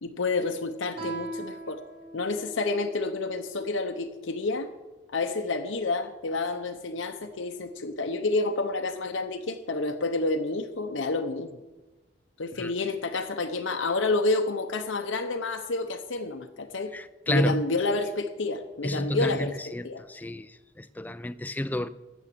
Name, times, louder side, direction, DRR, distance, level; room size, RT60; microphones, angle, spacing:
voice 1, 0.0-1.8 2.1-4.7 5.1-11.5 12.4-16.9 17.3-19.6 19.8-20.0, left 3 dB, 90° left, 0.8 m, -29 dB
Guitar, 0.9-4.2, right 2 dB, 30° right, 3.1 m, -41 dB
voice 2, 16.9-17.6 18.8-21.9, left 1 dB, 10° left, 0.3 m, -30 dB
13.0 x 7.3 x 7.5 m
head